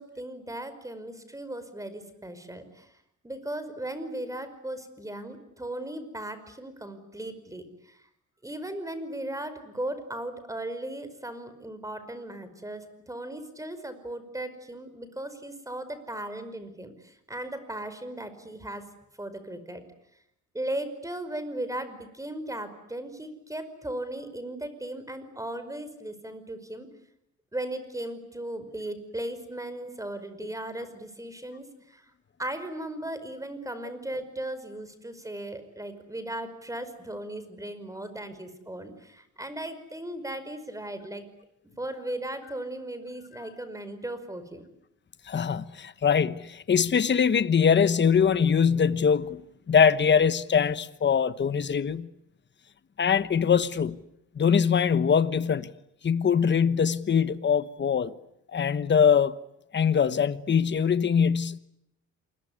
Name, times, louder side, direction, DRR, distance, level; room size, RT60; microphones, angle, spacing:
voice 1, 0.0-2.9 3.2-8.0 8.4-18.8 19.2-19.8 20.5-26.9 27.5-32.0 32.4-41.2 41.8-44.6, right 1 dB, 10° right, 5.2 m, -37 dB
voice 2, 45.3-49.4 49.7-52.1 53.0-54.0 54.4-55.7 56.0-58.1 58.5-59.3 59.7-61.6, left 7 dB, 35° left, 1.2 m, -22 dB
27.5 x 22.0 x 9.8 m
cardioid pair, 90°, 30 cm